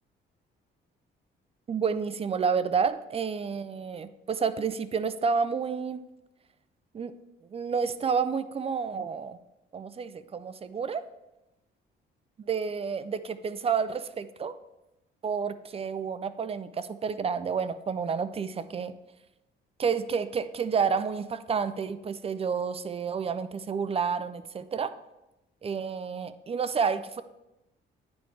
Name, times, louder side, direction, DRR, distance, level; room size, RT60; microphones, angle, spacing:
voice 1, 1.7-6.0 6.9-7.1 7.5-9.4 9.7-11.0 12.4-14.5 15.2-18.9 19.8-24.9 25.6-27.2, right 6 dB, 30° right, 13 dB, 0.4 m, -30 dB
9.3 x 3.2 x 4.4 m, 0.96 s
cardioid pair, 90°, 20 cm